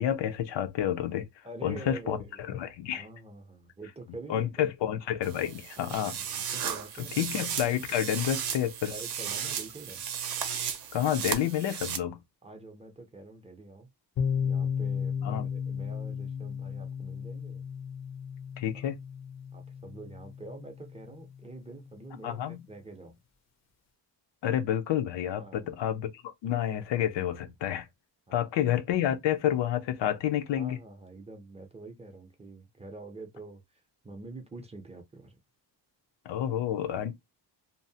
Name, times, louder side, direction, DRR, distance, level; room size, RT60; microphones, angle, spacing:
voice 1, 0.0-1.2 1.6-2.2 2.5-3.1 4.3-6.2 7.2-8.9 10.9-12.2 15.2-15.5 18.6-19.0 22.2-22.6 24.4-26.1 26.4-27.9 28.3-30.8 36.3-37.1, left 10 dB, 85° left, 0.6 m, -29 dB
voice 2, 1.4-2.5 2.9-4.7 5.8-7.3 8.9-10.0 12.4-13.9 14.4-17.6 18.7-18.9 19.5-23.2 25.3-25.7 28.3-28.5 30.5-35.3, right 2 dB, 15° right, 0.5 m, -46 dB
sound 1, 5.2-12.0, right 8 dB, 60° right, 0.6 m, -35 dB
sound 2, 14.2-21.8, left 7 dB, 40° left, 0.5 m, -34 dB
2.6 x 2.0 x 2.7 m
wide cardioid pair, 160°, 42 cm